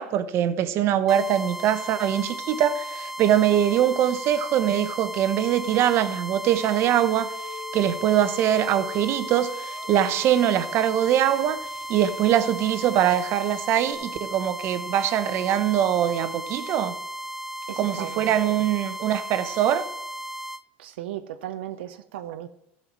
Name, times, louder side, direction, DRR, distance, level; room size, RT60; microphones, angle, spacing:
voice 1, 0.0-17.0 17.8-19.9, right 10 dB, 45° right, 1.0 m, -23 dB
sound 1, 1.1-20.6, equal, 5° right, 0.4 m, -36 dB
sound 2, 6.9-13.9, left 10 dB, 70° left, 3.5 m, -44 dB
voice 2, 17.7-18.6 20.8-22.5, right 12 dB, 90° right, 0.6 m, -36 dB
14.0 x 5.6 x 7.5 m
supercardioid pair, 125°, 6 cm